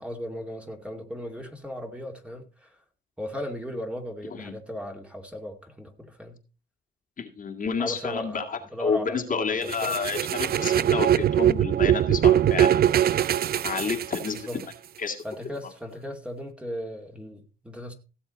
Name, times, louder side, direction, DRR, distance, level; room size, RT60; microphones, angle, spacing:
voice 1, 0.0-2.8 3.2-6.4 7.8-10.0 14.3-14.6 15.2-17.9, equal, 5° right, 2.4 m, -37 dB
voice 2, 7.2-12.9 13.6-14.4 15.0-15.2, left 5 dB, 45° left, 2.1 m, -30 dB
sound 1, 9.7-14.6, right 11 dB, 50° right, 0.5 m, -22 dB
16.5 x 7.1 x 4.0 m
cardioid pair, 90°, 20 cm